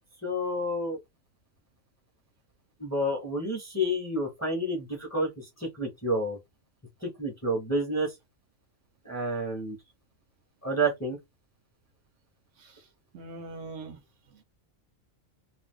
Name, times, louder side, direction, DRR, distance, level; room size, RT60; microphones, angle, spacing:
voice 1, 0.2-1.0 2.8-5.3 5.6-6.4 7.0-8.1 9.0-9.8 10.6-11.2, right 1 dB, 15° left, 0.9 m, -29 dB
voice 2, 12.6-12.9 13.1-14.0 14.3-14.4, right 3 dB, 70° right, 1.0 m, -42 dB
2.6 x 2.3 x 3.6 m
omnidirectional pair, 1.4 m